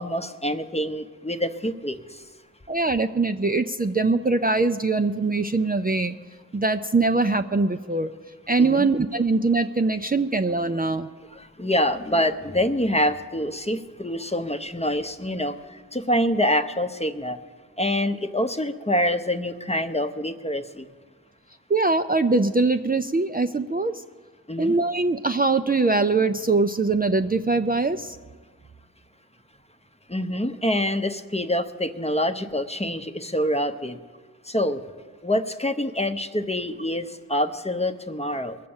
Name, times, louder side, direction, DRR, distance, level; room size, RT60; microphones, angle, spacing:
voice 1, 0.0-2.0 8.6-8.9 11.4-17.4 17.8-20.9 24.5-24.8 30.1-34.0 34.5-34.8 35.2-38.6, left 1 dB, 20° left, 8 dB, 0.8 m, -26 dB
voice 2, 2.7-6.2 6.5-8.1 8.5-11.1 21.7-24.0 24.6-28.2, right 3 dB, 25° right, 7 dB, 0.4 m, -22 dB
22.0 x 7.6 x 7.1 m, 1.5 s
wide cardioid pair, 65°, 34 cm